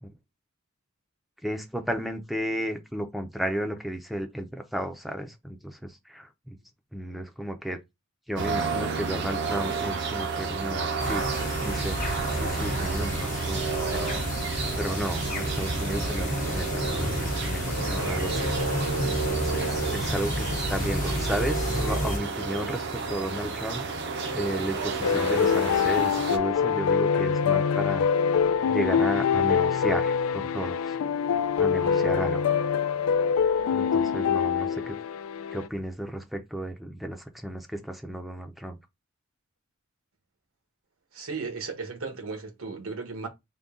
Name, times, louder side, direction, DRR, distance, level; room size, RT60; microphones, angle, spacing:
voice 1, 1.4-6.6 6.9-7.8 8.3-11.2 11.6-14.2 14.8-18.5 19.3-23.8 24.3-28.1 28.7-30.8 31.6-32.6 33.7-34.9 35.5-38.8, right 1 dB, ahead, 0.5 m, -33 dB
sound 1, 8.4-26.4, right 4 dB, 55° right, 0.6 m, -31 dB
sound 2, 11.0-22.2, left 1 dB, 40° left, 0.7 m, -31 dB
sound 3, 25.0-35.7, left 7 dB, 80° left, 0.3 m, -24 dB
voice 2, 41.1-43.3, right 4 dB, 75° right, 1.1 m, -36 dB
3.7 x 2.3 x 3.6 m
head